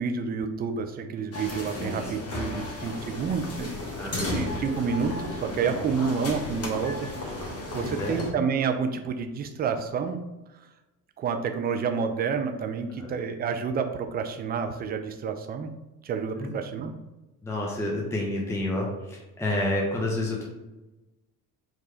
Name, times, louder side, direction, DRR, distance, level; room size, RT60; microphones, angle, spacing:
voice 1, 0.0-3.7 4.2-7.4 7.7-10.2 11.2-15.7 16.0-16.9, right 6 dB, 20° right, 6 dB, 0.4 m, -29 dB
sound 1, 1.3-8.3, left 2 dB, 30° left, 1.2 m, -34 dB
voice 2, 1.8-2.1 2.4-2.6 4.0-4.4 7.8-8.2 13.0-13.1 16.4-16.5 17.4-20.4, left 1 dB, 5° left, -2 dB, 0.8 m, -30 dB
4.7 x 2.4 x 4.2 m, 1.1 s
figure-of-eight pair, 55°, 50 cm